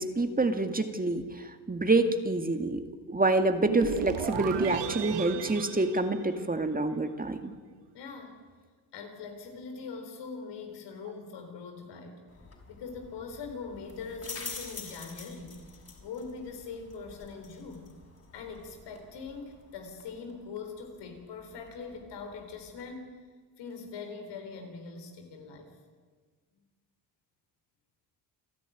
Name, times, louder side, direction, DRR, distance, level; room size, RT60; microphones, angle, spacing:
voice 1, 0.0-2.8 3.1-7.5, right 2 dB, 20° right, 7 dB, 2.1 m, -27 dB
sound 1, 3.6-6.9, right 9 dB, 90° right, 1.7 m, -35 dB
voice 2, 7.9-8.4 8.9-12.2 12.7-15.6 16.0-17.9 18.3-23.2 23.6-25.7, left 5 dB, 85° left, 5 dB, 4.1 m, -42 dB
sound 2, 12.3-22.9, left 4 dB, 35° left, 5.8 m, -48 dB
28.5 x 11.5 x 9.3 m, 1.5 s
cardioid pair, 75°, 41 cm